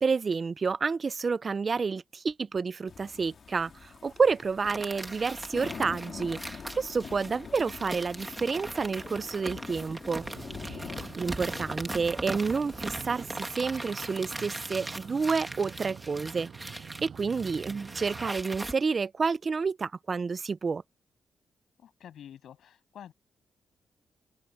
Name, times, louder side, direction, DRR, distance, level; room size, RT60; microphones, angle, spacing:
voice 1, 0.0-10.2 10.6-10.8 11.1-20.8, right 5 dB, 35° right, 0.4 m, -30 dB
sound 1, 2.9-15.4, left 6 dB, 50° left, 2.4 m, -46 dB
sound 2, 4.6-18.7, right 2 dB, 15° right, 2.2 m, -40 dB
sound 3, 10.1-18.3, right 7 dB, 55° right, 7.5 m, -46 dB
voice 2, 21.8-23.1, left 10 dB, 80° left, 7.3 m, -48 dB
open air
cardioid pair, 125°, 0 cm